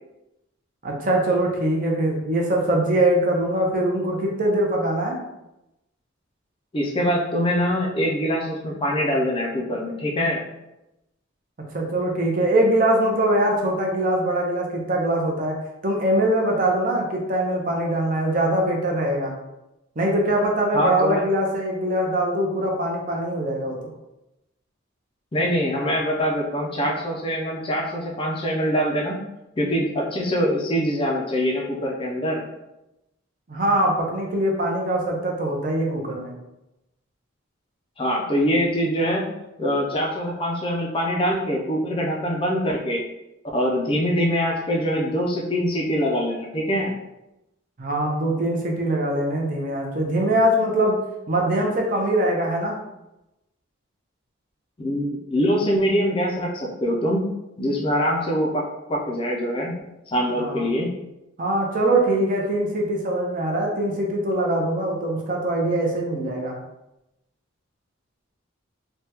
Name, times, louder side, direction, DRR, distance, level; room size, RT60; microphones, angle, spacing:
voice 1, 0.8-5.2 11.7-15.6 15.8-19.3 20.0-23.9 33.5-36.3 47.8-51.0 51.3-52.8 60.4-60.6 61.4-66.6, right 1 dB, 40° right, 0 dB, 0.6 m, -22 dB
voice 2, 6.7-10.4 20.7-21.2 25.3-29.2 29.6-32.4 38.0-39.3 39.6-43.0 43.5-46.9 54.8-57.3 57.6-59.8 60.1-60.9, equal, 25° left, -1 dB, 0.4 m, -24 dB
3.4 x 2.2 x 2.8 m, 0.92 s
head